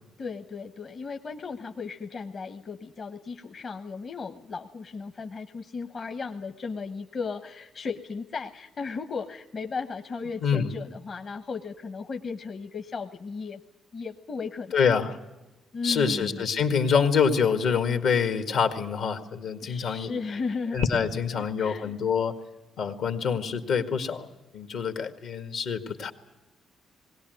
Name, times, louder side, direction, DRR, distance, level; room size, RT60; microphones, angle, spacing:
voice 1, 0.2-13.6 13.9-14.8 15.7-16.5 19.6-20.8 21.3-22.0, left 4 dB, 45° left, 6 dB, 1.1 m, -35 dB
voice 2, 14.7-15.2 15.8-20.1 20.7-22.3 22.8-24.3 24.5-26.1, left 6 dB, 75° left, 7 dB, 2.0 m, -26 dB
20.0 x 17.5 x 9.3 m, 1.1 s
cardioid pair, 90°, 0 cm